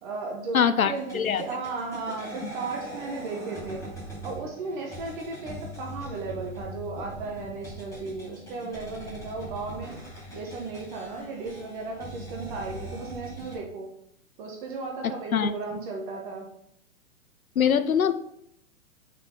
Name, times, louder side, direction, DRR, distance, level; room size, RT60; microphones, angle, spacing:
voice 1, 0.0-3.8 4.2-10.0 10.3-13.9 14.4-16.5, right 3 dB, 35° right, 0 dB, 1.1 m, -35 dB
voice 2, 0.5-1.4 15.0-15.5 17.6-18.1, left 8 dB, 80° left, 13 dB, 0.6 m, -23 dB
sound 1, 0.9-13.6, equal, 5° left, 2.3 m, -41 dB
6.9 x 4.3 x 3.8 m, 0.74 s
figure-of-eight pair, 115°, 41 cm